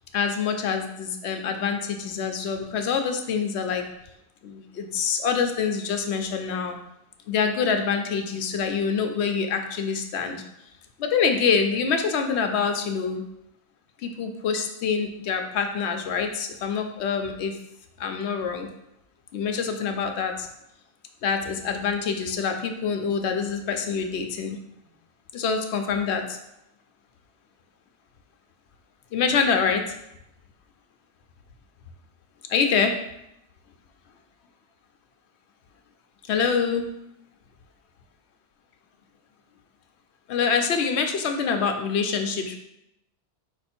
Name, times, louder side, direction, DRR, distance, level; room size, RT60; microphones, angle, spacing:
voice 1, 0.1-3.8 4.4-6.8 7.3-10.4 11.0-13.2 14.0-17.6 18.0-18.7 19.3-20.5 21.2-24.6 25.3-26.4 29.1-29.8 32.5-33.0 36.3-36.9 40.3-42.6, left 6 dB, 75° left, 5 dB, 0.9 m, -25 dB
4.8 x 2.6 x 4.2 m, 0.81 s
omnidirectional pair, 1.2 m